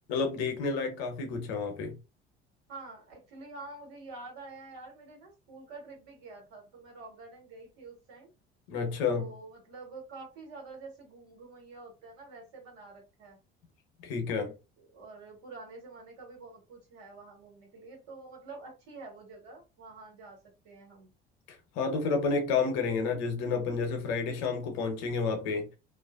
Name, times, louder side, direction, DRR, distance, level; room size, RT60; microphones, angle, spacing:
voice 1, 0.1-2.0 8.7-9.3 14.0-14.6 21.8-25.7, left 4 dB, 60° left, 0.8 m, -30 dB
voice 2, 2.7-8.3 9.2-13.4 14.8-21.1, right 3 dB, 60° right, 1.4 m, -48 dB
2.5 x 2.1 x 2.4 m
figure-of-eight pair, 60°, 31 cm